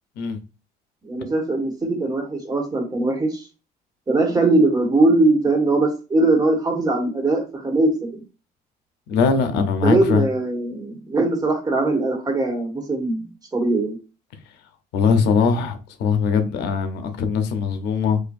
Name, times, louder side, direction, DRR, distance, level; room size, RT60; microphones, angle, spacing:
voice 1, 1.1-3.4 4.1-8.2 9.8-13.3 13.5-14.0, right 2 dB, 20° right, 1.5 m, -20 dB
voice 2, 9.1-10.3 14.9-18.2, left 5 dB, 85° left, 0.7 m, -21 dB
4.3 x 2.6 x 2.5 m
cardioid pair, 110°, 17 cm